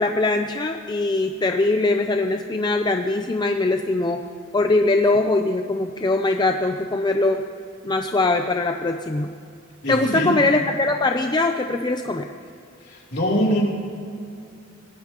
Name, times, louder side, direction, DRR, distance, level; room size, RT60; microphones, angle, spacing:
voice 1, 0.0-4.2 4.5-7.4 7.8-9.3 9.9-12.3, left 2 dB, 20° left, 5 dB, 0.5 m, -21 dB
voice 2, 9.8-10.4 12.8-13.6, equal, 55° left, -3 dB, 3.2 m, -23 dB
25.5 x 17.5 x 3.0 m, 2.4 s
head